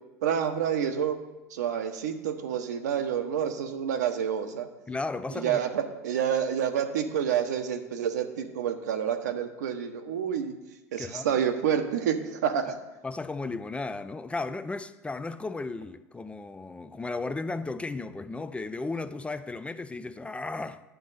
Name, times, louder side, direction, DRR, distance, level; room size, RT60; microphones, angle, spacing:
voice 1, 0.2-1.2 1.5-4.7 5.3-10.5 10.9-12.8, right 8 dB, 80° right, 1.0 m, -28 dB
voice 2, 4.9-5.6 11.0-11.4 13.0-20.8, left 3 dB, 15° left, 0.4 m, -35 dB
9.4 x 7.3 x 4.1 m
hypercardioid pair, 85°, 9 cm